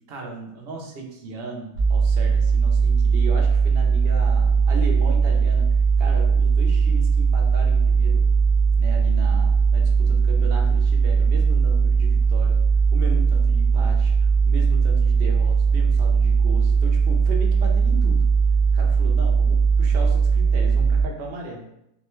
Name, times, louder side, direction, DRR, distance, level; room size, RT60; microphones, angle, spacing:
voice 1, 0.1-5.7 6.0-8.2 8.7-12.6 12.9-18.2 18.7-21.7, right 3 dB, 55° right, 0 dB, 0.7 m, -36 dB
sound 1, 1.8-21.0, right 5 dB, 75° left, 1.4 m, -19 dB
3.9 x 2.1 x 3.0 m, 0.82 s
omnidirectional pair, 1.6 m